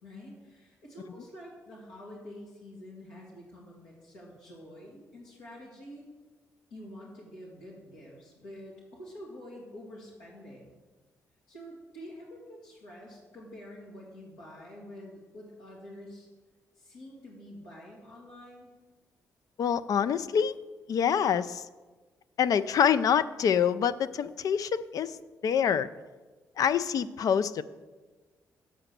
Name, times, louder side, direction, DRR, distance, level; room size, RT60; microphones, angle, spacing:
voice 1, 0.0-6.1 6.7-10.7 11.5-16.3 16.7-18.7, left 1 dB, 90° left, -5 dB, 1.9 m, -47 dB
voice 2, 19.6-20.6 20.9-21.6 22.4-25.2 25.4-25.9 26.6-27.6, left 8 dB, 65° left, 15 dB, 0.4 m, -26 dB
7.7 x 4.9 x 6.6 m, 1.3 s
supercardioid pair, 55°, 7 cm